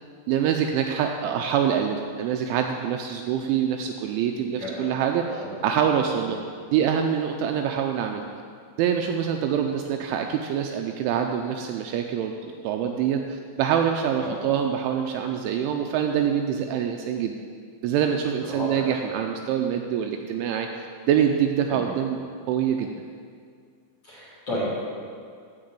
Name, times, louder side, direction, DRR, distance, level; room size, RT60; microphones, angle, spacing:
voice 1, 0.3-6.4 6.7-8.2 8.8-17.4 17.8-22.2 22.5-23.0, right 8 dB, 85° right, 3 dB, 2.8 m, -25 dB
voice 2, 4.5-4.8 5.2-5.5 6.2-6.4 14.2-14.4 18.5-18.9 21.7-21.9 24.0-24.8, left 1 dB, 35° left, -8 dB, 2.9 m, -33 dB
12.5 x 5.4 x 8.1 m, 2.1 s
omnidirectional pair, 5.8 m